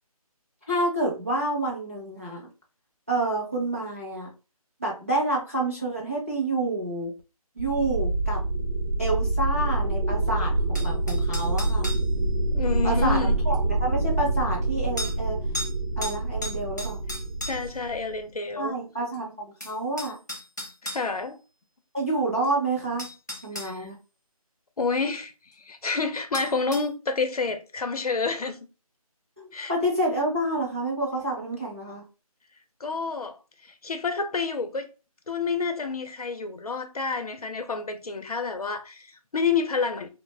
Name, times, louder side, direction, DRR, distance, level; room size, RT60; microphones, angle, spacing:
voice 1, 0.7-2.4 3.1-4.3 4.8-7.1 7.6-8.4 9.0-11.9 12.8-15.4 16.0-17.0 18.6-20.2 21.9-23.1 23.4-23.9 29.4-32.0, right 2 dB, 25° right, 0.5 m, -28 dB
sound 1, 7.6-18.2, right 2 dB, 75° right, 0.7 m, -26 dB
sound 2, 10.7-12.1 13.5-13.6 15.0-15.2 15.5-15.7 16.0-17.8 19.1-19.2 19.6-21.0 22.4-22.5 23.0-23.7 26.3-26.9, left 1 dB, 30° left, 0.5 m, -35 dB
voice 2, 12.5-13.4 17.5-18.8 20.8-21.4 23.5-23.9 24.8-28.6 29.5-29.7 32.8-34.9 35.3-40.1, left 4 dB, 75° left, 0.6 m, -29 dB
2.4 x 2.0 x 3.1 m
figure-of-eight pair, 175°, 19 cm